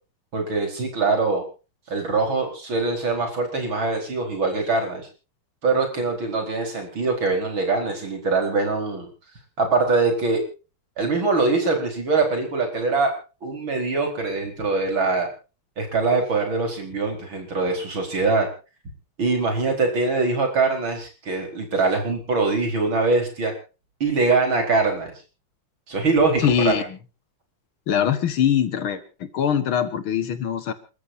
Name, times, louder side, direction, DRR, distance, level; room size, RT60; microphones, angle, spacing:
voice 1, 0.3-1.4 1.9-5.1 5.6-9.1 9.6-10.4 11.0-13.1 13.4-15.3 15.8-18.5 19.2-23.5 24.0-25.1 25.9-26.8, right 3 dB, 65° right, 3 dB, 5.3 m, -23 dB
voice 2, 26.4-27.0 27.9-30.7, left 9 dB, 70° left, 11 dB, 2.3 m, -22 dB
28.5 x 14.0 x 2.8 m, 0.34 s
omnidirectional pair, 2.4 m